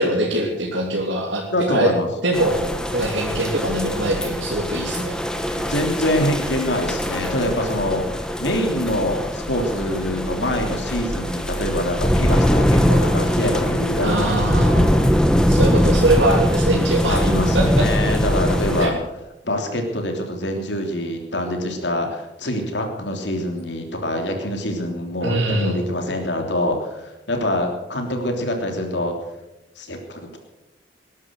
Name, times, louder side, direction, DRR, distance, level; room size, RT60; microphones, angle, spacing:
voice 1, 0.0-1.9 2.2-2.6 2.9-5.2 14.0-15.1 15.5-17.2 17.5-17.9 18.8-18.9 25.2-25.8, right 1 dB, 85° right, -2 dB, 3.0 m, -22 dB
voice 2, 1.5-2.1 2.5-2.7 5.6-14.9 16.8-18.9 19.4-29.2 29.8-30.4, left 1 dB, 70° left, 3 dB, 3.3 m, -25 dB
sound 1, 2.3-18.9, equal, 5° left, 1.3 m, -21 dB
20.0 x 11.0 x 6.4 m, 0.93 s
head